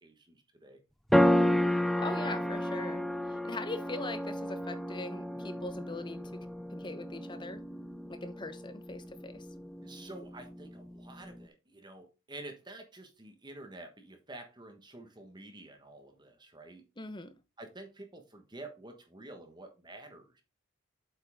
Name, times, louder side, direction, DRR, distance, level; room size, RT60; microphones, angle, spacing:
voice 1, 0.0-0.8 9.8-16.8 17.6-20.4, right 2 dB, 20° right, 1.2 m, -49 dB
sound 1, 1.1-11.4, left 1 dB, ahead, 0.3 m, -32 dB
voice 2, 2.0-3.0 3.3-6.5 6.7-7.6 8.1-9.4 17.0-17.3, left 2 dB, 20° left, 0.9 m, -41 dB
8.1 x 5.5 x 3.5 m
head